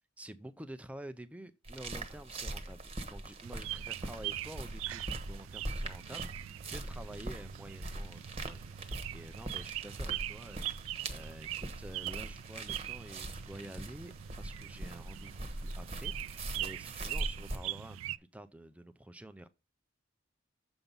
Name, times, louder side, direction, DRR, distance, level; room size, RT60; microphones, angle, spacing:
voice 1, 0.2-19.5, right 1 dB, 5° right, 0.4 m, -49 dB
sound 1, 1.6-17.6, right 2 dB, 30° right, 1.0 m, -42 dB
sound 2, 3.4-18.2, right 13 dB, 80° right, 0.3 m, -42 dB
7.0 x 5.3 x 5.3 m
head